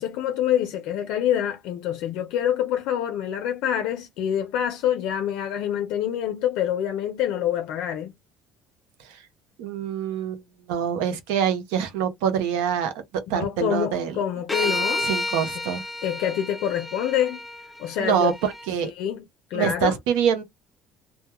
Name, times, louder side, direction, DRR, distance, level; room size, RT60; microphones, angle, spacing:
voice 1, 0.0-8.1 13.3-15.1 16.0-17.4 17.8-18.3 18.8-19.2 19.5-20.0, left 10 dB, 70° left, 0.4 m, -26 dB
voice 2, 9.6-10.4 10.7-13.0 13.3-14.2 14.6-15.8 18.0-18.9 19.5-20.4, right 8 dB, 80° right, 0.6 m, -25 dB
sound 1, 14.5-18.7, left 2 dB, 10° left, 0.5 m, -31 dB
2.2 x 2.1 x 2.9 m
supercardioid pair, 80°, 0 cm